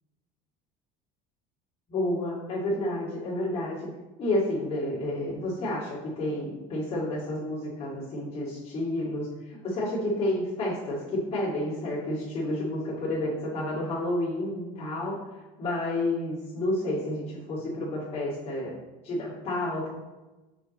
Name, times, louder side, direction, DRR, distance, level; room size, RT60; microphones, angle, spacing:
voice 1, 1.9-3.9 4.2-15.2 15.6-18.7 19.0-19.9, left 1 dB, 35° left, -9 dB, 2.2 m, -30 dB
6.3 x 4.5 x 4.1 m, 1.1 s
supercardioid pair, 115°, 18 cm